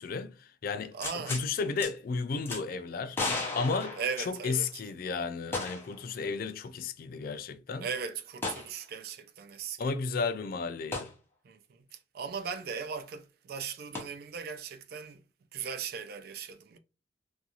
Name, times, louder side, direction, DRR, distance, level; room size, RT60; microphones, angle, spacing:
voice 1, 0.0-3.2 3.6-7.9 9.8-11.1, left 4 dB, 50° left, 0.3 m, -33 dB
voice 2, 0.9-1.4 4.0-4.7 7.8-9.8 11.4-11.8 12.1-15.2 15.5-16.8, right 6 dB, 55° right, 0.3 m, -38 dB
sound 1, 1.0-1.5 1.8-1.9 2.5-2.6 3.1-4.7 5.5-6.0 6.3-6.4 8.4-8.7 10.9-11.1 13.9-14.0, left 3 dB, 10° left, 0.6 m, -34 dB
2.6 x 2.3 x 2.8 m
head